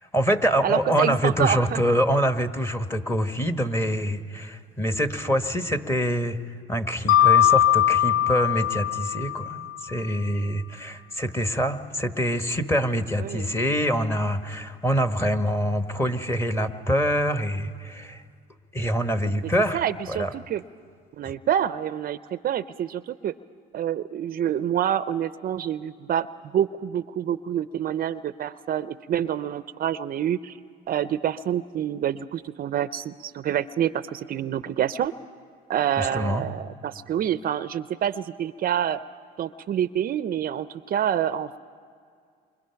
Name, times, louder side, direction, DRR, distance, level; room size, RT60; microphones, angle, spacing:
voice 1, 0.0-6.4 6.7-18.2 18.7-20.3 36.0-36.4, equal, 10° left, 8 dB, 1.2 m, -25 dB
voice 2, 0.6-1.8 13.2-13.5 19.7-20.6 21.2-23.3 23.7-26.3 26.5-30.6 30.9-35.1 35.7-39.0 39.4-41.6, right 10 dB, 45° right, 14 dB, 0.5 m, -27 dB
Mallet percussion, 7.1-9.9, left 11 dB, 85° left, 0.6 m, -20 dB
28.5 x 24.5 x 5.8 m, 2.2 s
supercardioid pair, 95°, 21 cm